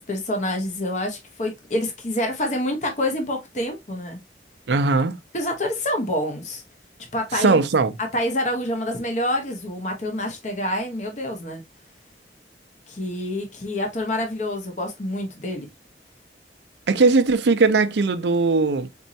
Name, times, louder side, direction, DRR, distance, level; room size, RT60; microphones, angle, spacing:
voice 1, 0.1-4.2 5.3-6.6 7.1-7.6 8.1-11.6 12.9-15.7, left 1 dB, 45° left, 1.0 m, -27 dB
voice 2, 4.7-5.2 7.3-7.9 16.9-18.9, right 3 dB, 80° right, 0.6 m, -19 dB
4.5 x 4.2 x 2.7 m
head